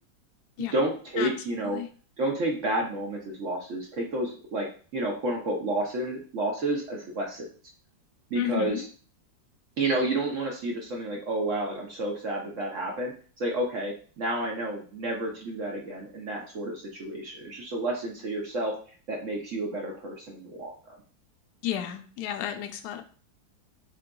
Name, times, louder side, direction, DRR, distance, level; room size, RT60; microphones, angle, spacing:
voice 1, 0.6-1.8 2.2-4.7 4.9-7.5 8.3-8.8 9.8-13.1 13.4-18.7 19.1-21.0, right 1 dB, 60° right, -1 dB, 0.8 m, -30 dB
voice 2, 8.4-8.8 21.6-23.0, left 11 dB, 75° left, 7 dB, 0.9 m, -32 dB
3.8 x 3.7 x 2.2 m, 0.40 s
omnidirectional pair, 2.1 m